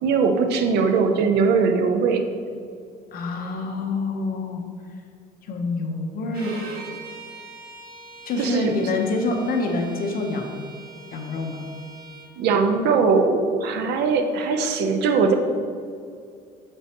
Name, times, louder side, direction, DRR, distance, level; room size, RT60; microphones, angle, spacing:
voice 1, 0.0-2.2 8.4-8.7 12.4-15.3, right 5 dB, 80° right, 6 dB, 0.7 m, -20 dB
voice 2, 3.1-4.6 5.5-6.5 8.3-10.6 11.1-11.6, left 2 dB, 60° left, 3 dB, 1.1 m, -26 dB
Bowed string instrument, 6.3-12.3, right 3 dB, 60° right, 1.8 m, -41 dB
7.9 x 6.7 x 3.0 m, 2.3 s
cardioid pair, 110°, 17 cm